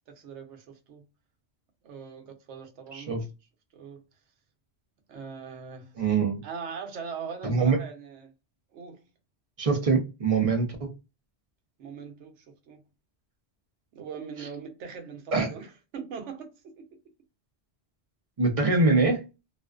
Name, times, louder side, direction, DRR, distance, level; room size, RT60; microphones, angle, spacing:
voice 1, 0.2-1.1 1.8-3.2 3.7-4.0 5.1-5.9 6.4-8.3 8.7-9.0 11.8-12.8 13.9-15.7 15.9-17.0, right 6 dB, 90° right, 1.0 m, -41 dB
voice 2, 2.9-3.2 6.0-6.4 7.4-7.8 9.6-10.9 15.3-15.5 18.4-19.2, right 4 dB, 40° right, 0.6 m, -24 dB
2.5 x 2.2 x 2.3 m
omnidirectional pair, 1.2 m